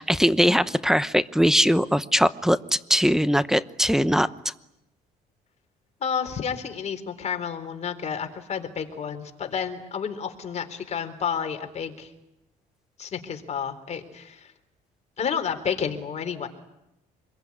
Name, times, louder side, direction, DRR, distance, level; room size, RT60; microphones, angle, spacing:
voice 1, 0.0-2.6 2.9-4.3, equal, 5° right, 14 dB, 0.9 m, -20 dB
voice 2, 6.0-12.1 13.0-14.5 15.2-16.5, left 7 dB, 40° left, 6 dB, 3.9 m, -30 dB
26.0 x 22.0 x 9.8 m, 0.88 s
cardioid pair, 110°, 17 cm